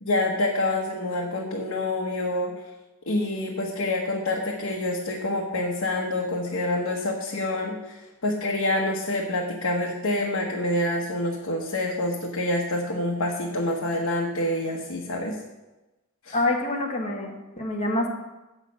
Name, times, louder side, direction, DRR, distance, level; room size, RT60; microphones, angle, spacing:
voice 1, 0.0-2.5 3.1-15.4 16.2-16.4, left 1 dB, 80° left, -1 dB, 1.1 m, -27 dB
voice 2, 16.3-18.1, left 2 dB, 30° left, 0 dB, 1.5 m, -26 dB
8.0 x 6.6 x 6.1 m, 1.1 s
head